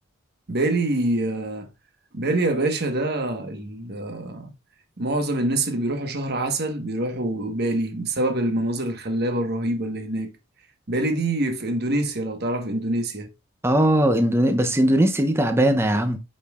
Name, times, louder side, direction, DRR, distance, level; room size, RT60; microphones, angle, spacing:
voice 1, 0.5-1.7 2.1-4.5 5.0-10.3 10.9-13.3, right 1 dB, 50° right, 1.2 m, -25 dB
voice 2, 13.6-16.2, right 1 dB, 10° right, 0.6 m, -19 dB
8.6 x 5.3 x 2.4 m
head